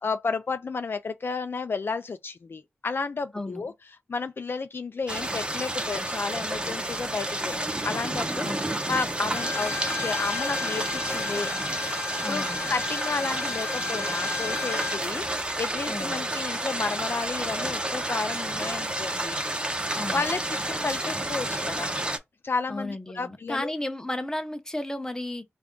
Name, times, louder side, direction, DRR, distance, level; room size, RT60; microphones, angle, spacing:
voice 1, 0.0-3.7 4.1-8.5 8.9-9.7 10.0-11.8 12.3-19.7 20.1-21.9 22.4-23.7, left 4 dB, 55° left, 0.4 m, -32 dB
voice 2, 3.3-3.7 8.4-8.7 12.2-12.6 15.9-16.2 19.9-20.3 22.7-25.4, left 1 dB, 15° left, 0.7 m, -33 dB
sound 1, 5.1-22.2, right 1 dB, 20° right, 0.8 m, -30 dB
Bowed string instrument, 9.3-15.0, left 6 dB, 85° left, 0.9 m, -34 dB
3.4 x 2.5 x 3.6 m
wide cardioid pair, 65°, 5 cm